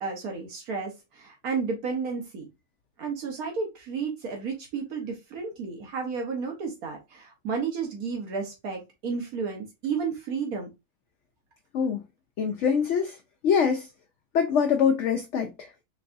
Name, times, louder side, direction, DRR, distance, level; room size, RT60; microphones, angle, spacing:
voice 1, 0.0-2.5 3.0-10.7, right 5 dB, 75° right, 1.4 m, -32 dB
voice 2, 12.4-13.2 13.4-13.9 14.3-15.5, left 6 dB, 60° left, 0.8 m, -23 dB
4.7 x 3.4 x 2.5 m
omnidirectional pair, 1.6 m